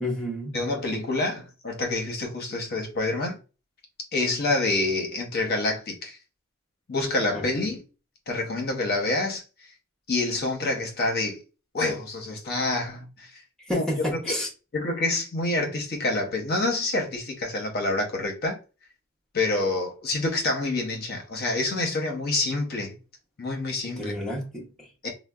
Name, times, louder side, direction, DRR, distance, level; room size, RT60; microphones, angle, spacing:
voice 1, 0.0-0.6 7.3-7.6 13.6-14.5 23.8-24.9, left 1 dB, 5° left, 0.7 m, -31 dB
voice 2, 0.5-3.4 4.1-6.2 6.9-7.8 8.3-9.4 10.1-11.4 11.7-13.3 13.7-13.8 14.2-14.4 14.7-18.6 19.3-22.9 23.4-24.1 25.0-25.1, left 2 dB, 50° left, 0.7 m, -27 dB
3.8 x 2.0 x 2.2 m
head